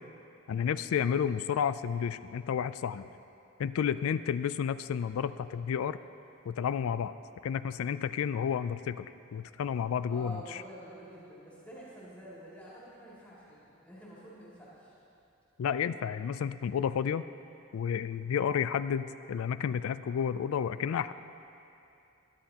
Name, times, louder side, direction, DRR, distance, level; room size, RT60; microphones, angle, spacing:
voice 1, 0.5-3.1 3.6-6.0 6.5-7.1 7.4-10.4 15.6-17.2 17.7-21.1, left 7 dB, 85° left, 14 dB, 0.3 m, -31 dB
voice 2, 10.0-14.9, right 1 dB, 5° left, -9 dB, 2.6 m, -48 dB
21.0 x 10.5 x 2.9 m, 2.8 s
head